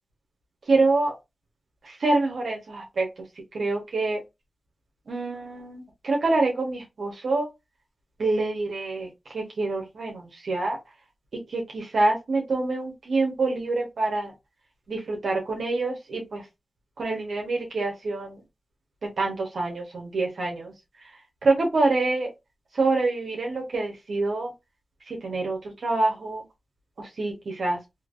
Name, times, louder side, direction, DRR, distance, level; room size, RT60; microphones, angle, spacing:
voice 1, 0.7-1.2 1.8-3.1 3.5-4.2 5.1-7.5 8.2-10.8 11.5-14.3 14.9-16.4 17.0-18.4 19.0-20.7 21.4-22.3 22.7-24.5 25.1-26.4 27.0-27.8, right 3 dB, 80° right, 0 dB, 1.0 m, -26 dB
3.1 x 2.9 x 2.5 m, 0.22 s
cardioid pair, 45°, 0 cm